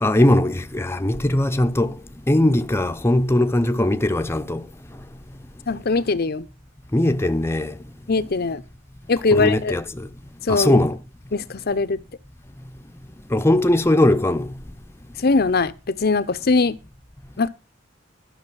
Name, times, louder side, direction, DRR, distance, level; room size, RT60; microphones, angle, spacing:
voice 1, 0.0-1.9 2.3-4.6 6.9-7.7 9.3-10.1 10.5-11.0 13.3-14.5, left 1 dB, 15° left, 0.7 m, -19 dB
voice 2, 5.7-6.4 8.1-8.6 9.1-9.7 10.4-10.8 11.3-12.0 15.2-16.8 17.4-17.5, left 3 dB, 55° left, 0.7 m, -21 dB
12.0 x 6.7 x 6.2 m
head